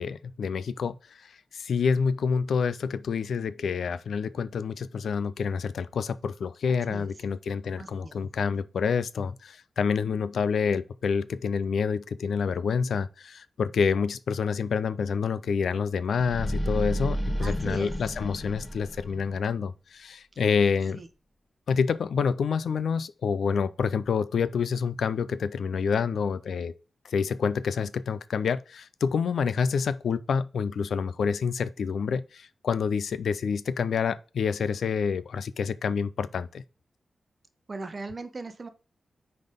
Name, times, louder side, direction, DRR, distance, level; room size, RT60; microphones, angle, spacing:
voice 1, 0.0-21.0 21.7-26.7 27.0-36.6, left 6 dB, 85° left, 0.4 m, -28 dB
voice 2, 7.8-8.1 17.4-17.9 20.9-21.1 37.7-38.7, right 3 dB, 35° right, 0.8 m, -38 dB
sound 1, 16.1-19.4, equal, 15° left, 1.0 m, -31 dB
5.4 x 4.0 x 5.0 m
wide cardioid pair, 115°, 0 cm